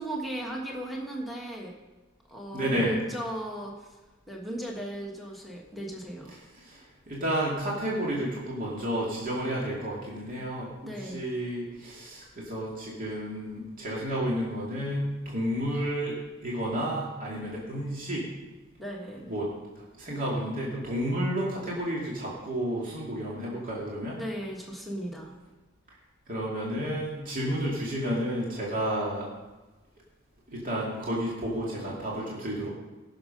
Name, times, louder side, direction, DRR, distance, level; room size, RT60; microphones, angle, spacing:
voice 1, 0.0-1.7 2.3-4.0 4.3-6.4 10.8-11.2 18.8-19.3 24.1-25.3, right 1 dB, ahead, -2 dB, 1.6 m, -37 dB
voice 2, 2.5-2.9 6.6-18.3 19.3-19.5 19.8-24.2 26.3-29.3 30.5-32.7, equal, 40° right, -5 dB, 2.4 m, -31 dB
17.0 x 6.7 x 5.3 m, 1.2 s
head